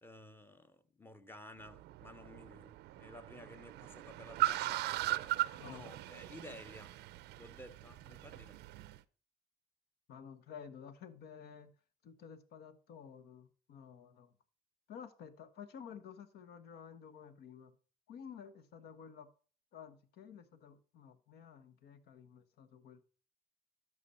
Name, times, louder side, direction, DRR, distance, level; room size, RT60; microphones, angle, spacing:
voice 1, 0.0-7.0 7.4-8.6, left 1 dB, 15° left, 0.8 m, -54 dB
Car, 1.6-9.0, right 16 dB, 85° right, 0.5 m, -39 dB
voice 2, 5.6-6.0 10.1-11.7 12.0-14.3 14.9-17.7 18.1-19.3 19.7-23.0, left 7 dB, 70° left, 1.2 m, -52 dB
11.0 x 6.6 x 4.2 m
cardioid pair, 110°, 17 cm